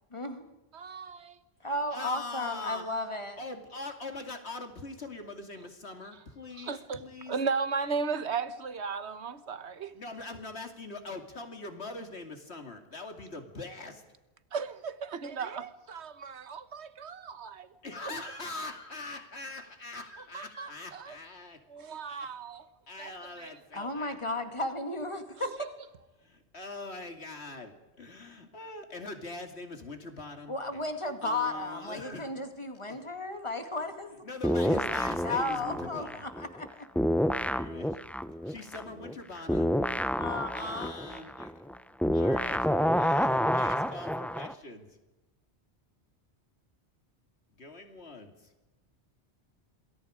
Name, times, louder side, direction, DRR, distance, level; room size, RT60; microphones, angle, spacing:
voice 1, 0.1-0.4 1.6-3.4 23.7-25.7 30.5-34.2 35.2-36.9 40.2-40.9, left 2 dB, 25° left, 2.1 m, -34 dB
voice 2, 0.7-1.3 6.6-7.0 7.3-9.9 14.5-17.7 18.0-18.2 20.3-21.2 21.7-22.6 23.0-23.1 23.4-23.5 23.8-23.9, right 5 dB, 80° right, 1.4 m, -35 dB
voice 3, 1.9-2.9 3.4-7.4 9.9-14.0 17.8-21.6 22.1-22.3 22.9-24.1 26.2-32.3 32.8-33.0 34.2-36.3 37.4-38.0 38.4-41.5 42.1-45.0 47.5-48.5, left 2 dB, 70° left, 2.8 m, -42 dB
sound 1, 34.4-36.7 37.0-44.5, equal, ahead, 0.6 m, -29 dB
27.0 x 21.5 x 5.1 m
omnidirectional pair, 1.1 m